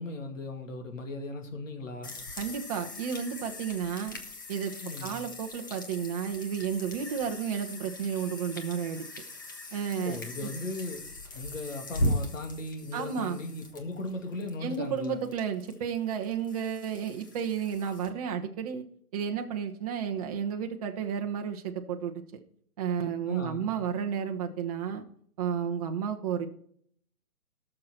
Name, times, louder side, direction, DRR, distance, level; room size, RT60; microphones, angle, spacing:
voice 1, 0.0-2.1 4.8-5.2 9.9-11.0 11.3-15.2 23.2-23.8, left 2 dB, 60° left, 5 dB, 2.6 m, -38 dB
sound 1, 2.0-18.1, left 1 dB, 15° left, 0.5 m, -39 dB
voice 2, 2.4-4.2 4.5-4.7 5.0-9.0 9.7-10.5 12.9-13.4 14.6-18.8 19.1-22.1 22.8-25.0 25.4-26.5, right 7 dB, 25° right, 4 dB, 0.9 m, -32 dB
17.0 x 6.7 x 4.4 m, 0.63 s
figure-of-eight pair, 140°, 44 cm